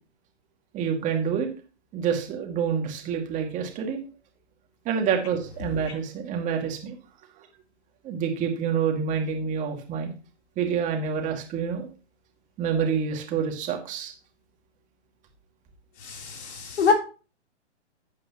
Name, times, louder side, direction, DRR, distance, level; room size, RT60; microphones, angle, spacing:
voice 1, 0.7-1.5 1.9-4.0 4.9-7.0 8.0-10.1 10.6-11.9 12.6-14.1, right 7 dB, 20° right, 2 dB, 2.2 m, -27 dB
voice 2, 16.0-16.9, left 6 dB, 65° left, 1 dB, 3.6 m, -24 dB
12.0 x 8.9 x 3.0 m, 0.35 s
hypercardioid pair, 145°, 36 cm